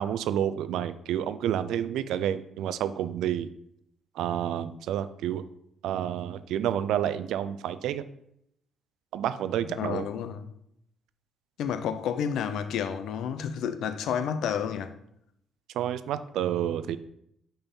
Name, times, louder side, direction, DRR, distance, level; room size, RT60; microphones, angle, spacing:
voice 1, 0.0-3.5 4.1-5.5 5.8-8.1 9.1-10.1 15.7-17.0, right 10 dB, 85° right, 0.4 m, -29 dB
voice 2, 9.8-10.5 11.6-14.9, left 8 dB, 80° left, 0.5 m, -30 dB
5.6 x 4.4 x 5.3 m
cardioid pair, 90°, 0 cm